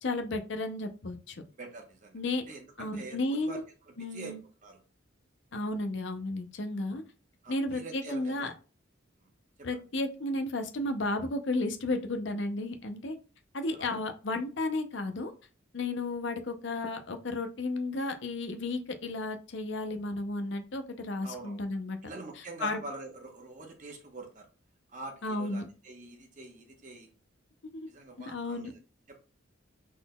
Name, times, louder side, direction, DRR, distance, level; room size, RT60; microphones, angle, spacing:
voice 1, 0.0-1.4 2.1-2.4 2.8-3.6 4.0-4.4 5.5-7.0 7.5-8.5 9.6-13.2 13.5-15.3 15.7-22.0 22.4-22.8 25.2-25.7 27.7-27.9 28.2-28.7, left 2 dB, 60° left, 7 dB, 0.6 m, -33 dB
voice 2, 1.6-2.2 2.5-3.6 4.0-4.3 4.6-4.8 7.4-8.4 9.6-9.7 13.8-13.9 21.2-21.6 22.0-24.5 24.9-27.1 27.9-28.8 29.1-29.2, right 2 dB, 40° right, 3 dB, 1.0 m, -45 dB
6.1 x 3.8 x 2.3 m, 0.35 s
head